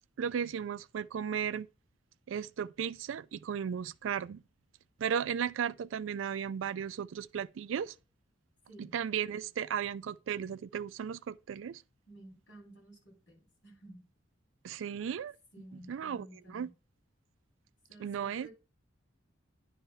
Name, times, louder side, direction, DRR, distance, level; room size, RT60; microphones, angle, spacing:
voice 1, 0.2-1.7 2.3-4.4 5.0-7.9 8.8-11.8 14.6-15.3 15.9-16.7 18.0-18.5, right 8 dB, 70° right, 0.3 m, -35 dB
voice 2, 12.1-14.0 15.5-16.7 17.9-18.5, right 1 dB, 60° left, 3.6 m, -53 dB
10.0 x 3.4 x 5.4 m
head